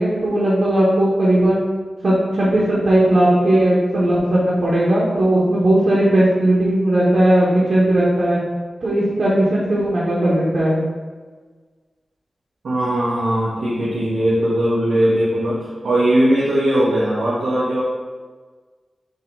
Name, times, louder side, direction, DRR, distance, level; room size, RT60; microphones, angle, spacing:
voice 1, 0.0-1.6 2.0-8.4 8.8-10.8, right 1 dB, 55° right, -7 dB, 1.4 m, -17 dB
voice 2, 12.6-17.8, right 1 dB, 90° right, -9 dB, 1.5 m, -19 dB
6.8 x 3.3 x 4.7 m, 1.4 s
wide cardioid pair, 145°, 0 cm